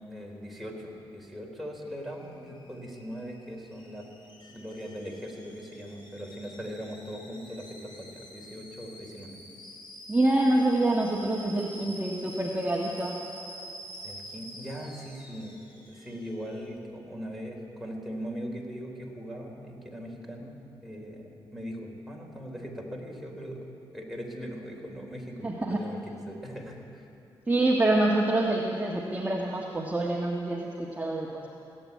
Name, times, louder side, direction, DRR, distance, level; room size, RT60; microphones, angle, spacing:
voice 1, 0.0-4.1 4.5-9.4 14.0-20.5 20.8-23.6 23.9-27.0, equal, ahead, -1 dB, 3.6 m, -40 dB
Alarm / Boiling, 1.8-16.6, equal, 50° left, 3.3 m, -48 dB
voice 2, 10.1-13.2 25.4-25.8 27.5-31.5, right 2 dB, 15° right, -1 dB, 1.5 m, -26 dB
17.5 x 8.7 x 9.5 m, 2.8 s
supercardioid pair, 55°, 10 cm